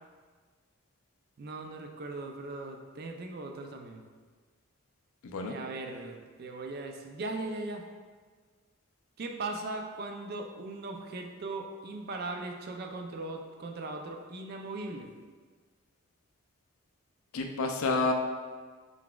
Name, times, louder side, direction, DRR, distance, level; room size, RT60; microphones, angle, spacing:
voice 1, 1.4-4.0 5.5-7.9 9.2-15.1, right 2 dB, 45° right, 4 dB, 0.4 m, -39 dB
voice 2, 17.3-18.1, left 3 dB, 70° left, 4 dB, 0.4 m, -29 dB
4.6 x 4.0 x 2.3 m, 1.5 s
head